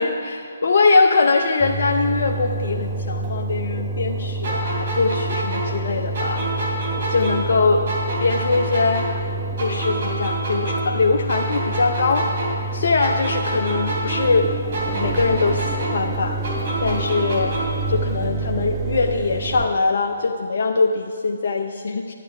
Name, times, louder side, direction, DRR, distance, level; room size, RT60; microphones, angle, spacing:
voice 1, 0.0-6.5 7.1-7.8 8.2-9.1 9.6-12.3 12.7-14.6 15.0-16.4 16.8-17.6 17.9-22.1, left 3 dB, 60° left, 3 dB, 0.5 m, -21 dB
Engine, 1.6-19.7, right 3 dB, 20° right, 0.9 m, -28 dB
sound 1, 4.4-7.6 7.9-11.0 11.3-14.4 14.7-17.9, right 1 dB, 55° right, 2.9 m, -28 dB
10.5 x 9.3 x 4.7 m, 2.3 s
figure-of-eight pair, 140°, 0 cm